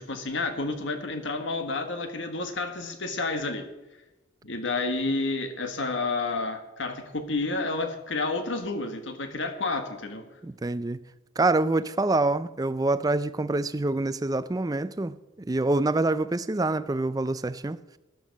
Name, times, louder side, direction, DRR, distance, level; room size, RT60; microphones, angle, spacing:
voice 1, 0.0-3.7 4.4-10.3, left 3 dB, 70° left, 1.5 m, -30 dB
voice 2, 10.4-11.0 11.4-17.8, right 2 dB, 20° right, 0.4 m, -26 dB
13.5 x 12.0 x 5.3 m
head